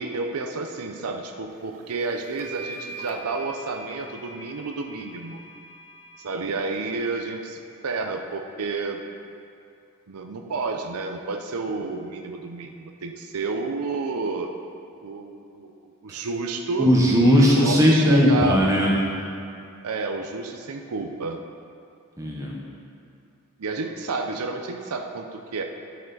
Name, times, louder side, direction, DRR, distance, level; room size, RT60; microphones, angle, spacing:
voice 1, 0.0-5.4 6.2-9.0 10.1-14.5 15.0-16.9 17.4-18.6 19.8-21.4 23.6-25.6, right 3 dB, 85° right, 3 dB, 0.6 m, -30 dB
sound 1, 1.8-1.9 2.4-7.2, right 2 dB, 45° right, 0.9 m, -41 dB
voice 2, 16.8-18.9 22.2-22.6, equal, 15° right, -3 dB, 0.9 m, -18 dB
11.0 x 6.5 x 4.0 m, 2.5 s
head